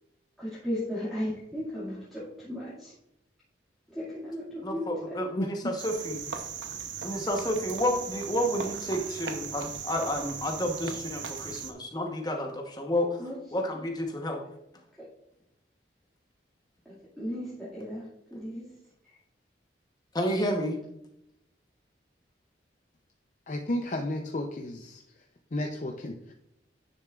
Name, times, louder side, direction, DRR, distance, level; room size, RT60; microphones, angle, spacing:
voice 1, 0.4-2.9 3.9-5.3 8.9-9.6 13.2-13.6 15.0-15.1 16.9-19.2, equal, ahead, -10 dB, 2.1 m, -37 dB
voice 2, 4.6-6.2 7.0-13.2 13.5-14.4 20.1-20.8, equal, 20° left, 2 dB, 1.0 m, -30 dB
Cricket, 5.8-11.7, right 6 dB, 80° right, 0.9 m, -38 dB
voice 3, 23.5-25.2 25.5-26.3, left 1 dB, 40° left, 2 dB, 0.6 m, -33 dB
9.8 x 6.8 x 2.4 m, 0.82 s
head